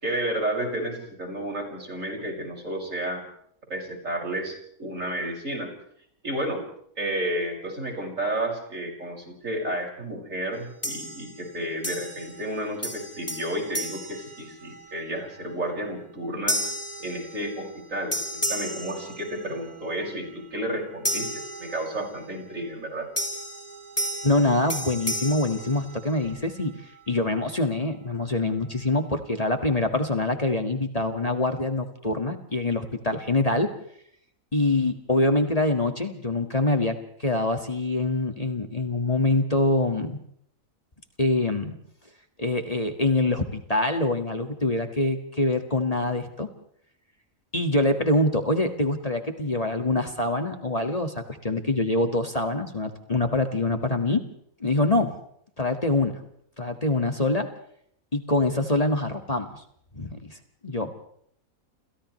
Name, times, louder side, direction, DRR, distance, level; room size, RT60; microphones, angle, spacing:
voice 1, 0.0-3.2 3.7-5.7 6.2-6.6 7.0-16.7 17.0-23.1, right 1 dB, 65° right, 1 dB, 6.8 m, -31 dB
sound 1, 10.8-11.5 11.8-12.5 12.8-15.0 15.5-15.8 16.5-17.8 18.1-19.7 21.0-22.2 23.2-26.4, equal, 10° left, 4.1 m, -33 dB
voice 2, 24.2-26.7 27.1-33.7 34.5-40.2 41.2-41.8 42.4-46.5 47.5-54.2 54.6-55.1 55.6-56.1 56.6-57.5 58.1-59.6 59.9-60.4 60.6-60.9, left 2 dB, 25° left, 5 dB, 2.0 m, -25 dB
29.5 x 28.5 x 3.3 m, 0.68 s
omnidirectional pair, 1.5 m